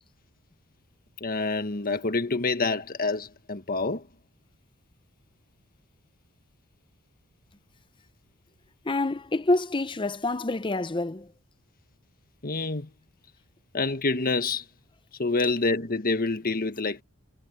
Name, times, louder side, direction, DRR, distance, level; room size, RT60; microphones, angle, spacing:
voice 1, 1.2-4.0 12.4-12.9 13.7-14.6 15.2-17.0, left 3 dB, 40° left, 1.5 m, -27 dB
voice 2, 8.8-11.3, left 2 dB, 20° left, 0.7 m, -27 dB
head